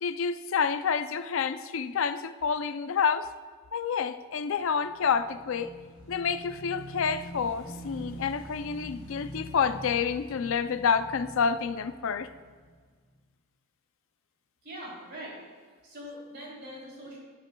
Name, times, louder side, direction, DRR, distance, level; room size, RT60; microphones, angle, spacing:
voice 1, 0.0-3.3 3.7-5.7 6.1-12.3, left 6 dB, 60° left, 12 dB, 0.4 m, -28 dB
Motorcycle / Engine, 4.6-13.1, equal, 20° left, 2.8 m, -45 dB
voice 2, 14.6-15.4 15.8-17.2, equal, 45° right, -4 dB, 3.0 m, -42 dB
11.5 x 11.0 x 2.2 m, 1.5 s
head